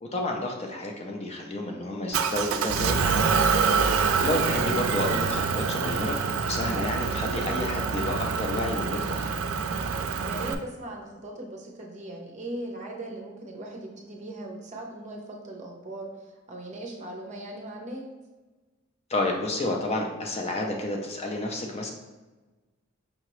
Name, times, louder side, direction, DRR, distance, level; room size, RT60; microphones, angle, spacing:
voice 1, 0.0-3.5 4.2-9.2 19.1-21.9, left 1 dB, 30° left, 1 dB, 0.5 m, -30 dB
Motor vehicle (road) / Engine, 2.1-10.5, right 5 dB, 85° right, 0.4 m, -26 dB
voice 2, 10.2-18.0, right 1 dB, 35° right, 0 dB, 0.7 m, -39 dB
5.4 x 2.8 x 3.0 m, 1.2 s
head